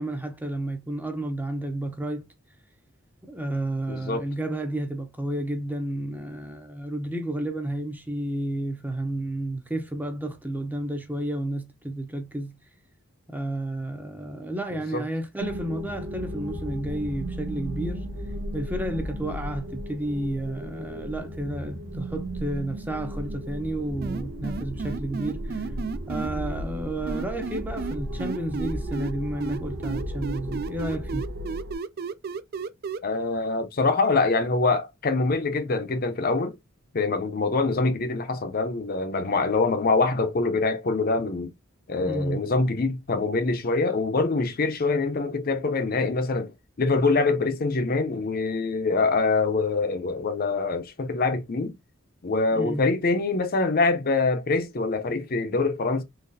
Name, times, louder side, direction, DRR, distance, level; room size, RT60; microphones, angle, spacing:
voice 1, 0.0-2.3 3.2-12.5 13.3-18.1 18.5-25.7 26.1-31.3 42.1-42.4 52.5-52.8, right 1 dB, 10° right, 0.6 m, -31 dB
voice 2, 3.9-4.3 14.7-15.0 33.0-36.6 36.9-41.5 41.9-46.5 46.8-51.7 52.2-56.0, left 3 dB, 45° left, 0.6 m, -24 dB
sound 1, 15.4-31.7, equal, 70° right, 0.9 m, -35 dB
sound 2, 24.0-26.3 27.1-29.1 29.4-33.0, right 5 dB, 50° right, 0.4 m, -32 dB
3.9 x 2.9 x 2.7 m
head